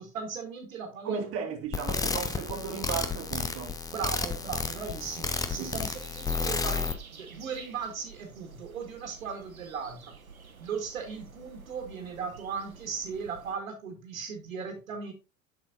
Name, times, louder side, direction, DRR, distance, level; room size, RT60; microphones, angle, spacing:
voice 1, 0.0-1.3 3.9-10.1 10.6-15.1, right 6 dB, 70° right, 1.6 m, -37 dB
voice 2, 1.1-3.8 5.6-5.8, right 6 dB, 35° right, 1.8 m, -35 dB
sound 1, 1.7-6.9, left 4 dB, 10° left, 0.6 m, -32 dB
sound 2, 3.9-13.6, right 5 dB, 85° right, 1.0 m, -50 dB
7.6 x 6.5 x 2.8 m
figure-of-eight pair, 80°, 41 cm